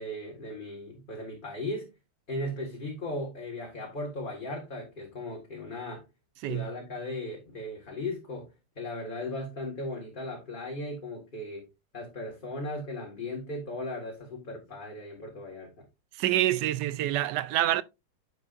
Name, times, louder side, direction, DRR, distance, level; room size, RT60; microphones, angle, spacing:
voice 1, 0.0-1.9 2.3-6.0 6.5-8.5 8.8-11.7 11.9-15.9, left 1 dB, 25° left, 1.8 m, -37 dB
voice 2, 16.2-17.8, right 13 dB, 75° right, 1.1 m, -26 dB
9.7 x 6.6 x 2.5 m
omnidirectional pair, 2.0 m